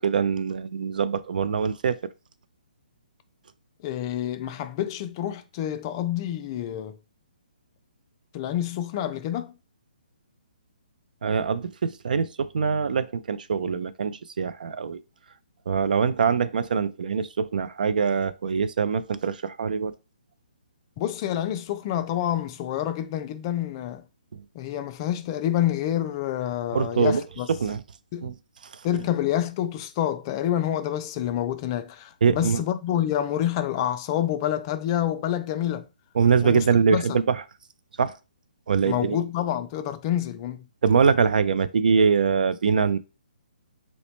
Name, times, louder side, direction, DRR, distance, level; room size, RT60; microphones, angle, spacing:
voice 1, 0.0-2.0 11.2-15.0 15.7-19.9 24.3-24.4 26.7-27.2 27.5-27.8 28.2-28.4 32.2-32.6 36.1-37.4 38.0-38.2 38.7-39.2 40.8-43.0, right 6 dB, 65° right, 0.3 m, -23 dB
voice 2, 3.8-7.0 8.3-9.5 21.0-24.0 24.5-27.5 28.1-28.3 28.8-35.9 36.4-36.7 36.9-37.2 38.8-40.6, left 11 dB, 30° left, 0.3 m, -28 dB
3.8 x 2.1 x 3.1 m
figure-of-eight pair, 140°, 5 cm